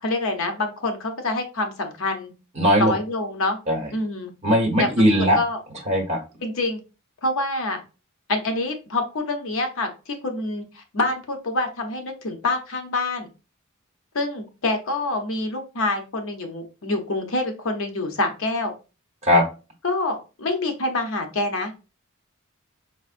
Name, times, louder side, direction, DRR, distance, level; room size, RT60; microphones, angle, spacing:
voice 1, 0.0-2.3 2.8-3.6 3.9-4.3 4.8-5.6 6.4-6.8 7.2-7.8 8.3-13.3 14.1-18.7 19.8-21.7, left 2 dB, 65° left, 5 dB, 0.7 m, -26 dB
voice 2, 2.6-2.9 3.7-3.9 4.4-5.4 5.9-6.2 19.2-19.4, equal, 30° right, 1 dB, 1.2 m, -18 dB
4.8 x 2.4 x 2.5 m, 0.31 s
head